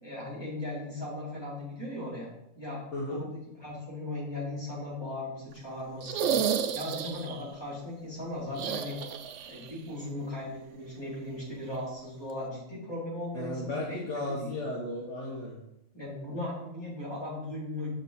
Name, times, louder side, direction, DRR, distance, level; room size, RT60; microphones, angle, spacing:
voice 1, 0.0-2.8 3.1-6.3 6.7-9.0 9.5-14.5 15.9-17.9, left 1 dB, 20° left, -8 dB, 3.5 m, -38 dB
voice 2, 2.9-3.2 13.3-15.6, left 1 dB, 60° left, -3 dB, 1.5 m, -34 dB
sound 1, 6.0-7.4 8.5-9.7 10.0-10.1 11.7-11.8, right 8 dB, 65° right, 0.9 m, -31 dB
7.7 x 6.1 x 4.2 m, 0.83 s
omnidirectional pair, 1.4 m